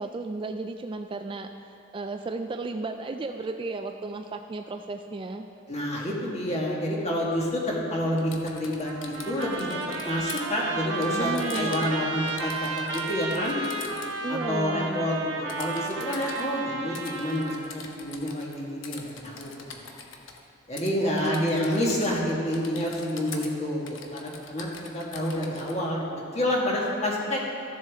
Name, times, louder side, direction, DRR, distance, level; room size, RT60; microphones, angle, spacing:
voice 1, 0.0-1.5 1.9-5.5 11.1-11.9 14.2-15.1 21.0-21.6, right 3 dB, 25° right, 6 dB, 0.3 m, -34 dB
voice 2, 5.7-9.7 10.0-13.6 14.3-19.8 20.7-24.7 24.9-27.4, left 1 dB, 35° left, -3 dB, 1.7 m, -28 dB
Typing, 8.2-10.4 11.0-12.0 12.3-14.1 15.5-16.4 16.9-18.6 18.8-20.4 20.8-20.9 21.2-22.2 22.5-23.5 23.9-25.7, left 5 dB, 80° left, 1.0 m, -43 dB
Trumpet, 8.8-17.8, right 3 dB, 75° right, 1.1 m, -33 dB
14.5 x 7.4 x 3.6 m, 2.5 s
head